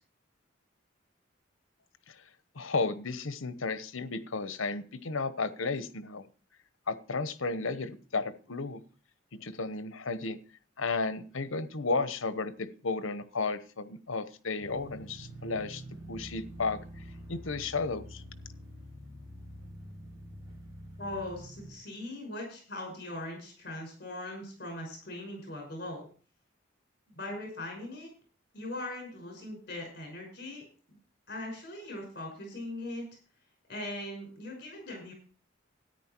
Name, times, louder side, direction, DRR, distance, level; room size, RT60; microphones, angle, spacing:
voice 1, 2.5-6.2 6.9-8.8 9.4-10.4 10.8-15.8 16.1-17.0 17.3-18.2, left 3 dB, 85° left, 13 dB, 1.0 m, -33 dB
sound 1, 14.6-21.7, equal, 15° right, 6.6 m, -46 dB
voice 2, 21.0-26.1 27.2-28.1 28.5-30.6 30.9-31.0 31.3-33.0 33.7-35.1, left 1 dB, 50° left, 1 dB, 5.7 m, -40 dB
13.5 x 9.8 x 4.5 m, 0.40 s
head